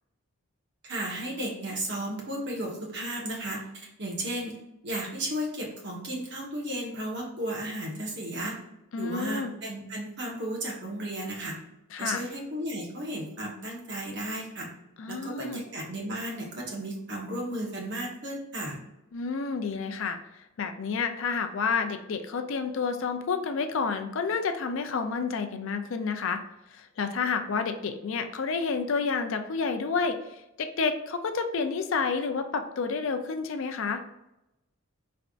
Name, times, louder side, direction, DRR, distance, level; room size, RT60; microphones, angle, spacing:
voice 1, 0.8-4.5 4.8-8.6 9.0-11.5 12.0-14.7 15.1-18.8, right 1 dB, 50° right, -2 dB, 1.2 m, -34 dB
voice 2, 8.9-9.5 11.9-12.2 15.0-15.6 19.1-20.2 20.6-26.4 26.7-34.0, left 5 dB, 60° left, 7 dB, 0.4 m, -30 dB
4.9 x 3.4 x 2.5 m, 0.90 s
head